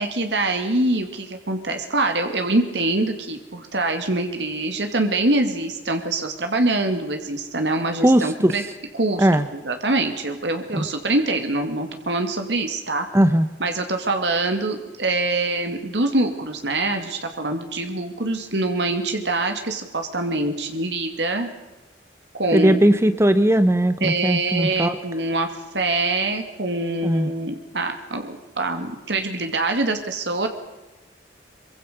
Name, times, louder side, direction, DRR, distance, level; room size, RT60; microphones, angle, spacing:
voice 1, 0.0-8.6 8.9-13.1 13.6-21.5 22.3-22.8 24.0-30.5, right 2 dB, 75° right, 6 dB, 2.4 m, -24 dB
voice 2, 8.0-8.6 9.2-9.5 10.7-10.9 13.1-13.5 22.5-25.0 27.0-27.3, right 1 dB, 15° right, 11 dB, 0.8 m, -18 dB
24.5 x 23.0 x 6.8 m, 1.1 s
head